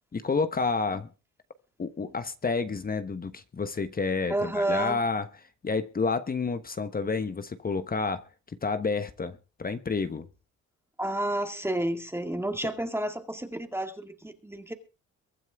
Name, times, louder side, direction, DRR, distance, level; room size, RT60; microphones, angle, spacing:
voice 1, 0.1-1.1 1.8-5.3 5.6-8.3 8.6-10.3, left 4 dB, 30° left, 1.2 m, -29 dB
voice 2, 4.3-5.0 11.0-14.7, right 1 dB, 10° right, 2.1 m, -30 dB
23.0 x 9.2 x 3.6 m
cardioid pair, 90°, 30 cm